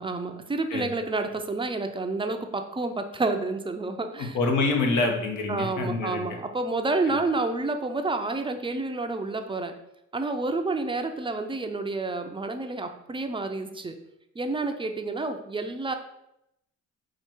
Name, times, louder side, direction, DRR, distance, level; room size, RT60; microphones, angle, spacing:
voice 1, 0.0-4.4 5.5-9.7 10.1-14.0 14.4-15.9, right 3 dB, 15° right, 6 dB, 0.5 m, -29 dB
voice 2, 4.2-6.2, left 3 dB, 75° left, 2 dB, 1.0 m, -26 dB
4.7 x 2.5 x 4.4 m, 0.82 s
cardioid pair, 90°, 30 cm